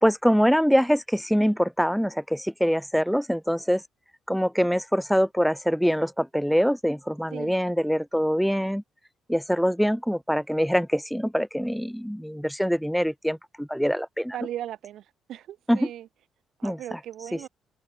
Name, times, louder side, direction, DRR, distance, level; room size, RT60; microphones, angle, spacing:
voice 1, 0.0-3.8 4.3-8.8 9.3-14.4 15.7-15.9 16.6-17.0 17.3-17.4, equal, ahead, 1.0 m, -24 dB
voice 2, 14.3-15.0 15.3-16.1 16.6-17.5, right 12 dB, 75° right, 0.8 m, -37 dB
open air
cardioid pair, 90°, 0 cm